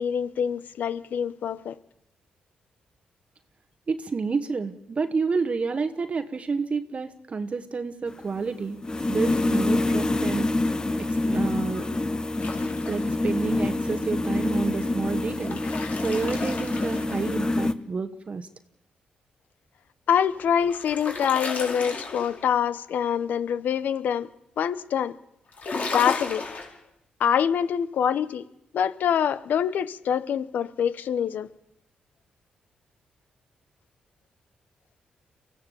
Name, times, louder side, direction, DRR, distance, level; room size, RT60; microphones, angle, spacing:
voice 1, 0.0-1.8 20.1-24.3 24.6-25.2 25.9-26.5 27.2-28.4 28.7-31.5, left 8 dB, 75° left, 0.9 m, -25 dB
voice 2, 3.9-8.8 9.1-10.5 11.0-11.9 12.9-15.6 16.0-18.5, right 4 dB, 45° right, 1.2 m, -29 dB
sound 1, 8.1-17.7, left 2 dB, 25° left, 1.2 m, -26 dB
sound 2, 12.4-13.3 15.1-17.6 20.2-22.6 25.5-26.7, left 4 dB, 55° left, 4.7 m, -34 dB
24.0 x 15.5 x 7.0 m
cardioid pair, 65°, 3 cm